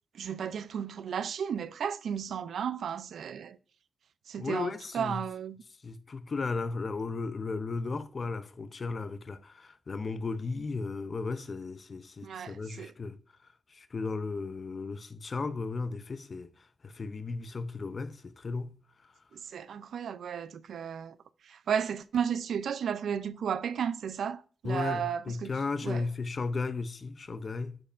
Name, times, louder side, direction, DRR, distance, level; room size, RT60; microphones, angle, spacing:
voice 1, 0.1-3.6 4.3-5.6 12.2-12.9 19.5-21.2 21.5-25.5 25.8-26.0, right 8 dB, 80° right, 0.4 m, -34 dB
voice 2, 4.4-5.2 5.8-13.2 13.7-18.7 24.6-27.8, left 4 dB, 45° left, 0.5 m, -35 dB
10.5 x 4.4 x 2.5 m
cardioid pair, 85°, 0 cm